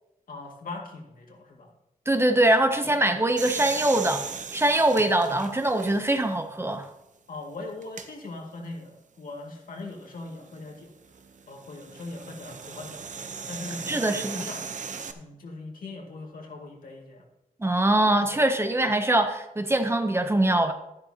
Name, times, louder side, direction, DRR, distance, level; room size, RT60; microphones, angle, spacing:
voice 1, 0.3-1.7 7.3-10.9 11.5-14.7 15.1-17.3, left 2 dB, 80° left, 0 dB, 2.1 m, -40 dB
voice 2, 2.1-4.2 4.5-6.9 13.9-14.4 17.6-20.7, right 1 dB, 15° right, 7 dB, 0.7 m, -23 dB
sound 1, 3.4-6.3 6.8-6.9 7.8-8.1 10.2-15.1, right 5 dB, 60° right, 0.8 m, -38 dB
13.0 x 11.0 x 2.9 m, 0.88 s
wide cardioid pair, 170°, 14 cm